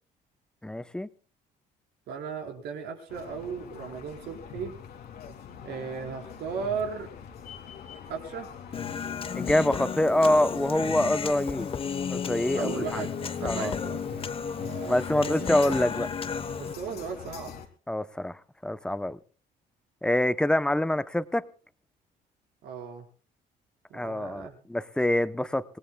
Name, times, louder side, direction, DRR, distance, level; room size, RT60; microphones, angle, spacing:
voice 1, 0.6-1.1 9.3-11.7 12.1-13.1 13.4-13.8 14.8-16.1 17.9-19.2 20.0-21.5 23.9-25.6, left 1 dB, 5° left, 14 dB, 0.8 m, -26 dB
voice 2, 2.1-4.7 5.6-7.1 8.1-8.5 12.5-15.5 16.6-17.6 22.6-23.0 23.9-24.6, right 6 dB, 75° right, 2 dB, 4.8 m, -36 dB
sound 1, 3.1-17.7, left 8 dB, 70° left, 2.8 m, -44 dB
Human voice, 8.7-16.7, left 6 dB, 35° left, 1.1 m, -33 dB
26.0 x 18.5 x 2.3 m, 0.36 s
cardioid pair, 110°, 17 cm